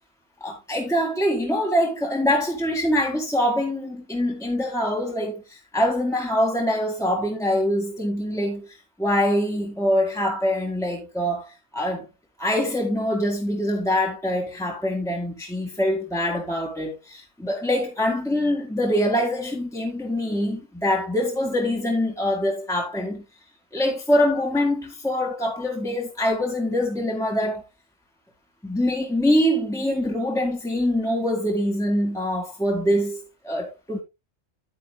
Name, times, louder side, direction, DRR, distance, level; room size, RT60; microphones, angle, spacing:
voice 1, 0.4-12.1 12.4-23.2 23.7-27.6 28.6-34.0, left 1 dB, 5° left, 1.9 m, -24 dB
10.0 x 9.7 x 2.3 m
omnidirectional pair, 1.1 m